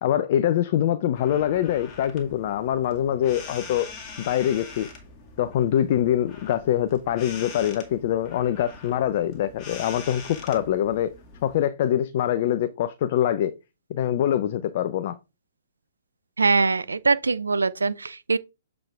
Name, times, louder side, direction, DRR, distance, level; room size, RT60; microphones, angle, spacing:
voice 1, 0.0-3.9 4.3-4.9 5.4-11.1 11.4-13.5 13.9-15.2, left 11 dB, 50° left, 0.6 m, -24 dB
sound 1, 1.1-11.6, left 4 dB, 30° left, 2.1 m, -43 dB
voice 2, 16.4-18.4, right 4 dB, 85° right, 0.5 m, -22 dB
7.5 x 5.1 x 3.4 m
hypercardioid pair, 125°, 0 cm